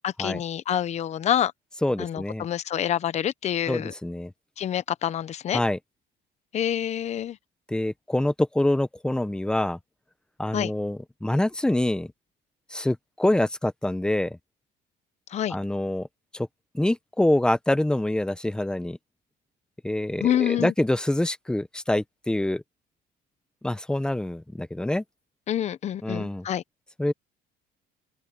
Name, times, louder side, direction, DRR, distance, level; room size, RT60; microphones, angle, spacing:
voice 1, 0.0-1.5 2.0-3.9 4.6-5.6 6.5-7.4 10.5-10.7 15.3-15.6 20.2-20.7 25.5-26.6, left 10 dB, 35° left, 0.8 m, -27 dB
voice 2, 1.8-2.5 3.7-4.3 5.5-5.8 7.7-9.8 10.4-12.1 12.7-14.4 15.5-16.1 16.3-16.5 16.7-19.0 19.8-22.6 23.6-25.0 26.0-26.4 27.0-27.1, left 1 dB, 5° left, 0.9 m, -25 dB
open air
cardioid pair, 145°, 19 cm